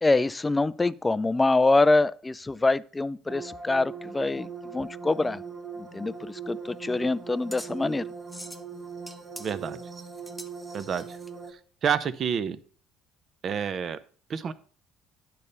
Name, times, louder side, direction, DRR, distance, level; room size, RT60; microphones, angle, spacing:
voice 1, 0.0-5.4 5.8-8.1, left 2 dB, 15° left, 0.3 m, -25 dB
sound 1, 3.3-11.5, right 5 dB, 25° right, 1.1 m, -40 dB
sound 2, 6.1-11.3, equal, 5° right, 0.8 m, -46 dB
voice 2, 9.4-9.8 10.7-11.2 11.8-12.6 13.4-14.0 14.3-14.5, right 7 dB, 40° right, 0.7 m, -28 dB
10.5 x 4.2 x 6.6 m
cardioid pair, 130°, 0 cm